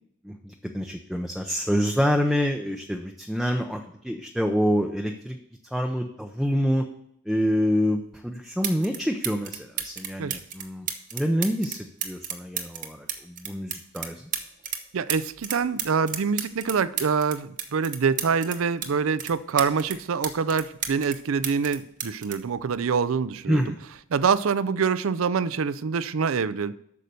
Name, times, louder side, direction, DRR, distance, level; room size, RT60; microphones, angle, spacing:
voice 1, 0.2-5.4 5.7-6.9 7.3-14.3 23.5-23.8, equal, ahead, 3 dB, 0.5 m, -27 dB
sound 1, 8.1-8.2 8.6-9.0 9.2-14.8 15.1-18.9 19.2-21.2 21.4-23.3 24.2-24.4, right 8 dB, 40° right, 0.9 m, -33 dB
voice 2, 14.9-23.6 24.1-26.7, right 5 dB, 75° right, 15 dB, 0.5 m, -25 dB
8.5 x 6.4 x 6.8 m, 0.72 s
head